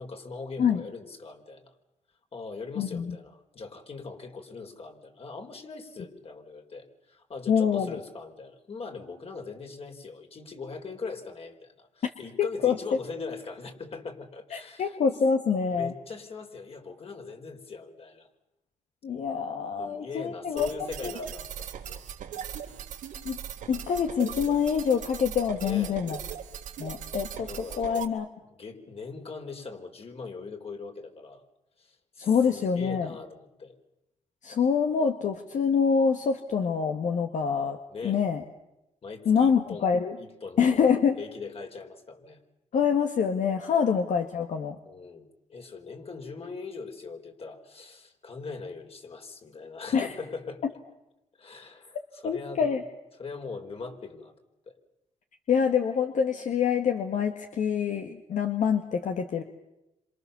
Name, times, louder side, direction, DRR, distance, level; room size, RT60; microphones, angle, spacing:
voice 1, 0.0-1.7 2.3-15.0 15.7-18.3 19.8-22.0 25.6-26.0 27.5-28.0 28.5-31.4 31.8-33.7 37.9-38.2 39.0-39.9 40.2-40.9 41.2-42.4 43.7-43.9 44.8-50.8 51.4-52.7 53.2-54.3 54.7-54.8, left 4 dB, 50° left, 4 dB, 4.7 m, -41 dB
voice 2, 2.8-3.2 7.5-8.0 12.4-12.8 14.5-15.9 19.0-20.7 21.0-21.1 23.3-23.4 23.7-26.2 26.8-28.3 32.2-33.1 34.4-37.8 38.0-38.4 39.3-40.2 40.6-41.2 42.7-44.8 49.9-50.1 52.2-52.8 55.5-59.4, left 6 dB, 70° left, 5 dB, 1.8 m, -25 dB
sound 1, 20.6-28.1, right 9 dB, 90° right, 3.1 m, -39 dB
27.5 x 27.0 x 7.0 m, 0.90 s
cardioid pair, 80°, 13 cm